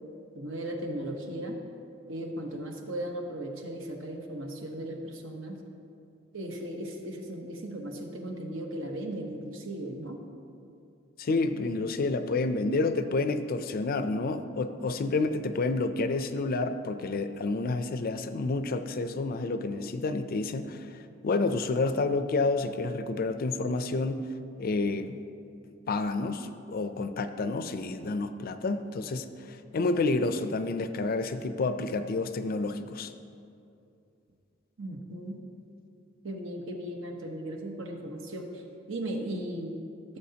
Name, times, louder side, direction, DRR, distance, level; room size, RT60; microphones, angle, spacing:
voice 1, 0.3-1.6 2.1-5.6 6.3-10.2 34.8-35.4 36.2-38.5 38.9-39.7, right 1 dB, 75° right, 2 dB, 1.0 m, -36 dB
voice 2, 11.2-20.8 21.2-24.3 24.6-25.2 25.9-33.1, left 3 dB, 50° left, 10 dB, 0.4 m, -29 dB
14.0 x 6.8 x 2.8 m, 2.6 s
head